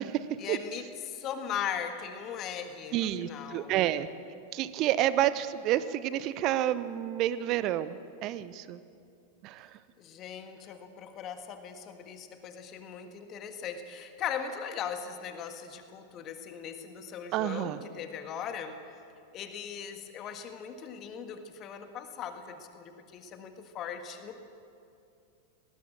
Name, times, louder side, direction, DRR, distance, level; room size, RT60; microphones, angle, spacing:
voice 1, 0.4-3.7 10.0-18.8 19.3-24.4, left 8 dB, 35° left, 7 dB, 1.7 m, -39 dB
voice 2, 2.9-4.1 4.5-8.8 9.4-9.8 17.3-17.8, right 12 dB, 40° right, 15 dB, 0.8 m, -29 dB
19.5 x 18.5 x 7.6 m, 2.5 s
figure-of-eight pair, 90°, 0 cm